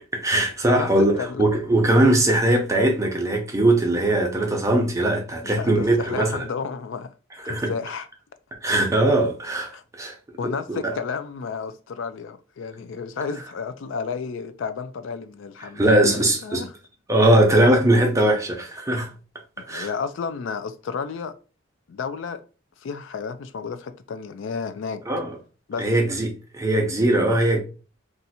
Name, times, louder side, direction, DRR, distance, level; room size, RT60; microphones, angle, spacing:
voice 1, 0.1-6.4 7.4-7.7 8.6-10.1 10.4-10.9 15.6-16.7 17.1-19.1 19.7-19.9 25.1-25.4 25.8-27.6, right 1 dB, 15° right, 0.7 m, -20 dB
voice 2, 5.4-7.1 7.4-8.1 9.7-9.8 10.4-16.7 19.6-21.3 21.9-22.4 22.8-25.0 25.7-25.9, left 5 dB, 70° left, 0.4 m, -32 dB
2.6 x 2.4 x 4.1 m
head